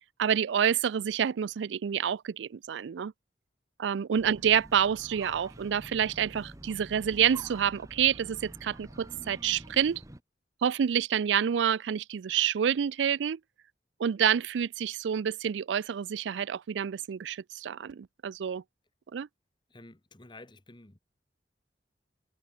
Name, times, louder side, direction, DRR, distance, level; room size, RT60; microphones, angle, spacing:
voice 1, 0.2-3.1 3.8-10.0 10.6-13.4 14.0-18.6 19.1-19.3, right 8 dB, 85° right, 0.4 m, -28 dB
sound 1, 4.1-10.2, right 1 dB, 20° right, 1.3 m, -48 dB
voice 2, 19.7-21.0, left 2 dB, 25° left, 1.4 m, -51 dB
head